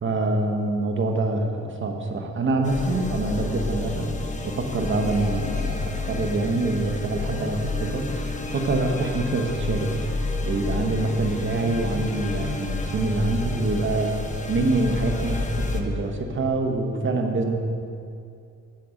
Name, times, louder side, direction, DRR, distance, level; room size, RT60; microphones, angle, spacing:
voice 1, 0.0-4.1 4.4-9.9 10.4-14.1 14.5-17.5, right 2 dB, 40° right, 3 dB, 1.2 m, -25 dB
sound 1, 2.6-15.8, left 3 dB, 25° left, 1.0 m, -30 dB
10.0 x 7.1 x 5.2 m, 2.5 s
cardioid pair, 90°, 30 cm